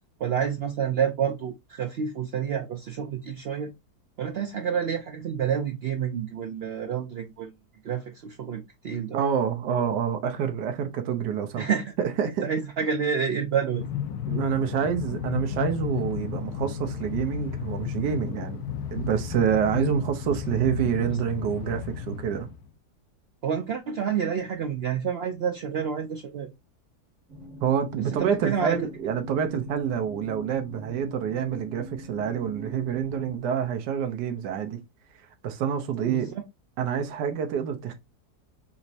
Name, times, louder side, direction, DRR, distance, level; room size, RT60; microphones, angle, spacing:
voice 1, 0.2-3.7 4.2-7.5 7.8-9.2 11.6-11.9 12.4-13.9 23.4-26.5 28.1-28.8 36.1-36.4, right 7 dB, 70° right, 0.6 m, -29 dB
voice 2, 9.1-11.7 12.0-12.4 14.3-18.6 18.9-22.5 27.6-34.8 35.2-36.3 36.8-37.9, right 8 dB, 85° right, 1.3 m, -27 dB
Train, 13.8-22.7, left 8 dB, 70° left, 1.2 m, -33 dB
sound 1, 27.3-33.4, left 1 dB, 35° right, 0.8 m, -43 dB
5.5 x 3.0 x 2.7 m
omnidirectional pair, 1.7 m